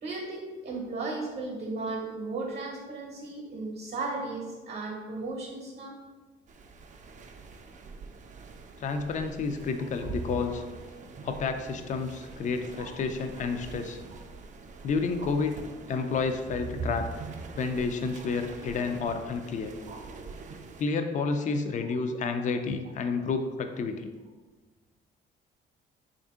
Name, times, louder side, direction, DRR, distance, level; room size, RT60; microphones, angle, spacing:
voice 1, 0.0-6.0 12.7-12.9 15.2-15.3 19.9-20.0 21.1-21.2, right 3 dB, 55° right, 0 dB, 0.8 m, -35 dB
sound 1, 6.5-20.8, right 3 dB, 40° right, 0.4 m, -43 dB
voice 2, 8.8-10.6 11.2-14.0 14.8-15.6 15.9-17.1 17.6-19.8 20.8-24.1, left 4 dB, 40° left, 7 dB, 0.4 m, -30 dB
3.5 x 2.5 x 3.5 m, 1.3 s
cardioid pair, 90°, 20 cm